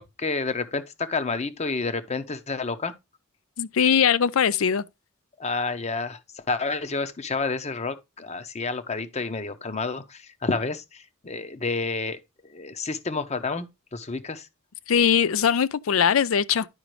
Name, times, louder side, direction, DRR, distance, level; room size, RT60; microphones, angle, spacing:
voice 1, 0.0-2.9 5.4-12.2 12.4-13.7 13.9-14.5, left 3 dB, 30° left, 0.8 m, -29 dB
voice 2, 3.6-4.8 14.9-16.7, left 7 dB, 70° left, 0.5 m, -21 dB
10.5 x 5.0 x 3.1 m
head